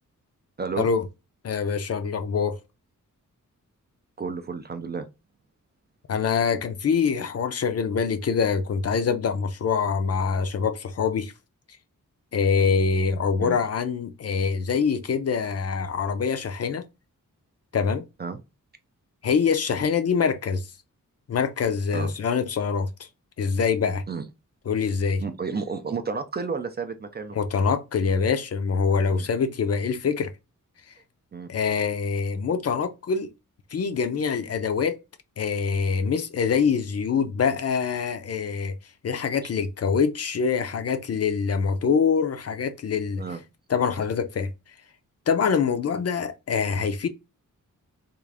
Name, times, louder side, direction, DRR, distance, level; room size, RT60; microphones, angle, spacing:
voice 1, 1.4-2.6 6.1-11.3 12.3-16.8 17.7-18.0 19.2-20.7 21.3-23.1 23.4-24.0 24.7-25.2 27.3-30.3 31.5-33.3 33.7-35.0 35.4-38.7 39.0-43.2 43.7-44.5 45.3-47.1, left 6 dB, 50° left, 0.5 m, -24 dB
voice 2, 4.2-5.1 13.4-13.6 18.2-18.4 21.9-22.1 24.1-24.3 25.2-27.4 29.1-29.3 31.3-31.5 43.2-43.4, right 5 dB, 30° right, 0.4 m, -31 dB
3.6 x 2.4 x 3.3 m
wide cardioid pair, 175°, 32 cm